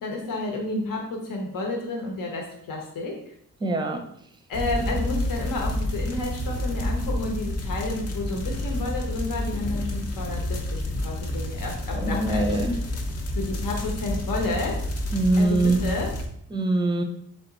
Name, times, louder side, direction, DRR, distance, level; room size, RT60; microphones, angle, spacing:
voice 1, 0.0-3.3 4.5-12.6 13.3-14.8 15.4-16.1, left 2 dB, 80° left, 0 dB, 1.1 m, -31 dB
voice 2, 3.6-4.0 11.9-12.8 15.1-15.8 16.5-17.0, right 2 dB, 15° right, 5 dB, 0.5 m, -23 dB
sound 1, 4.5-16.3, left 1 dB, 50° left, 0.7 m, -29 dB
3.6 x 3.4 x 4.0 m, 0.69 s
wide cardioid pair, 135°, 33 cm